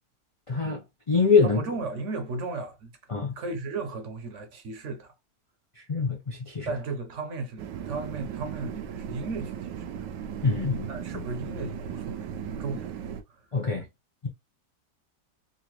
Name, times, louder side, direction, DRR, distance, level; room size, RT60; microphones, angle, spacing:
voice 1, 0.5-0.8 1.1-1.6 3.1-3.3 5.9-6.7 10.4-11.3 13.5-13.9, left 5 dB, 55° left, 0.3 m, -24 dB
voice 2, 1.4-2.9 3.3-5.1 6.7-10.1 10.9-12.9 13.3-13.5, right 3 dB, 55° right, 0.9 m, -35 dB
sound 1, 7.6-13.2, right 8 dB, 85° right, 1.2 m, -36 dB
3.9 x 2.5 x 2.9 m
omnidirectional pair, 1.9 m